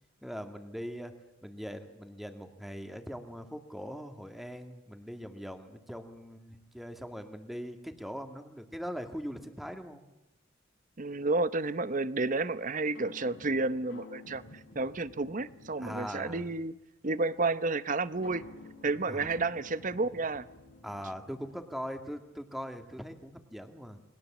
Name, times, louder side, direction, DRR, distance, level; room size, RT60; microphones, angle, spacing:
voice 1, 0.2-1.1 1.4-10.0 15.8-16.5 19.1-19.3 20.8-24.0, equal, ahead, 1.8 m, -41 dB
voice 2, 11.0-16.7 17.0-18.5 18.8-20.5, right 3 dB, 40° right, 0.8 m, -31 dB
sound 1, 12.9-16.7 18.2-21.8, left 2 dB, 80° left, 4.2 m, -52 dB
28.5 x 21.0 x 7.3 m
head